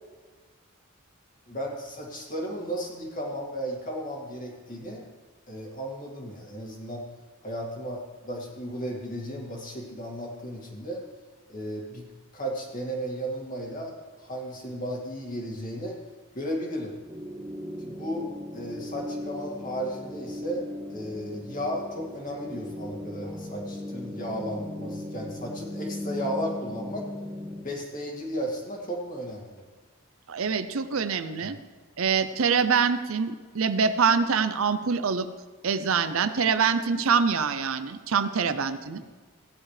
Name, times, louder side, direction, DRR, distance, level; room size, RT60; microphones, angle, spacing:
voice 1, 1.5-5.1 5.5-7.0 7.4-11.0 11.5-12.0 12.3-13.9 14.2-16.0 16.3-16.9 17.8-18.3 18.5-20.6 20.9-27.1 27.6-29.7, equal, 40° left, -1 dB, 2.2 m, -34 dB
sound 1, 17.0-27.6, left 1 dB, 10° right, 1.3 m, -38 dB
voice 2, 30.3-31.6 32.0-35.3 35.6-39.0, right 6 dB, 70° right, 11 dB, 0.6 m, -25 dB
16.0 x 9.9 x 3.3 m, 1.4 s
head